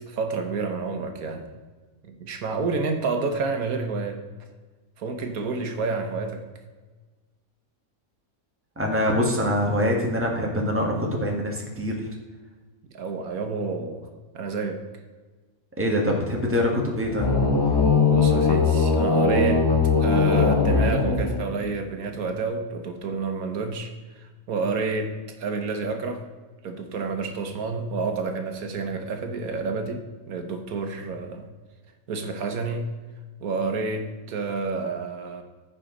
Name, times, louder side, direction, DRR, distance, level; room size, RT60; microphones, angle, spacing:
voice 1, 0.1-1.5 2.0-4.2 5.0-6.4 12.9-14.1 14.3-14.8 18.1-19.6 20.0-25.1 25.4-26.2 26.6-31.5 32.1-32.9 33.4-35.4, right 4 dB, 85° right, 6 dB, 1.4 m, -29 dB
voice 2, 8.8-11.9 15.8-17.3, equal, 10° right, 0 dB, 1.5 m, -24 dB
sound 1, 17.0-21.8, left 4 dB, 25° left, 0.6 m, -20 dB
15.0 x 5.1 x 3.8 m, 1.3 s
omnidirectional pair, 1.5 m